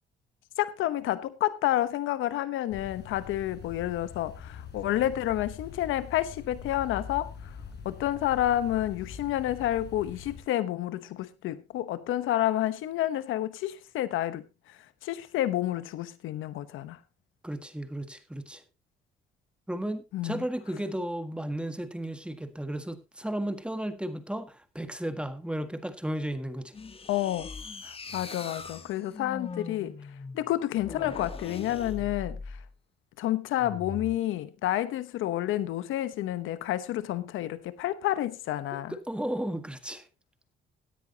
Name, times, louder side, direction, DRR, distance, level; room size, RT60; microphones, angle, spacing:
voice 1, 0.6-7.5 7.8-17.0 20.1-20.4 27.1-27.5 27.8-30.0 30.3-32.6 33.2-38.9, left 13 dB, 90° left, 1.0 m, -30 dB
sound 1, 2.7-10.4, left 6 dB, 60° left, 4.0 m, -43 dB
voice 2, 17.4-18.6 19.7-26.7 38.7-40.0, right 1 dB, 5° right, 1.7 m, -34 dB
sound 2, 26.7-32.7 33.6-34.2, left 4 dB, 30° left, 1.3 m, -41 dB
17.0 x 10.0 x 2.8 m
cardioid pair, 90°, 20 cm